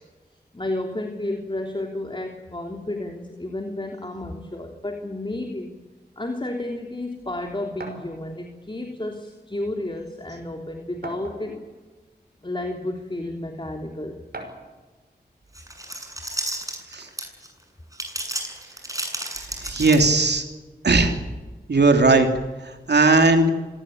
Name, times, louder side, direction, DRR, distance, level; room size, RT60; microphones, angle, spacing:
voice 1, 0.5-5.7 6.2-11.6 12.4-14.2, left 1 dB, 30° left, 3 dB, 3.3 m, -31 dB
sound 1, 7.8-8.1 9.2-9.3 9.7-9.8 11.0-11.7 12.5-12.6 14.3-14.7, right 2 dB, 60° right, 5.8 m, -38 dB
sound 2, 15.5-17.5 17.9-20.4, right 1 dB, 20° right, 7.5 m, -32 dB
voice 2, 19.6-20.4 20.8-21.1 21.7-22.3 22.9-23.5, right 3 dB, 75° right, 5 dB, 3.2 m, -17 dB
26.0 x 18.0 x 8.8 m, 1.3 s
cardioid pair, 50°, 18 cm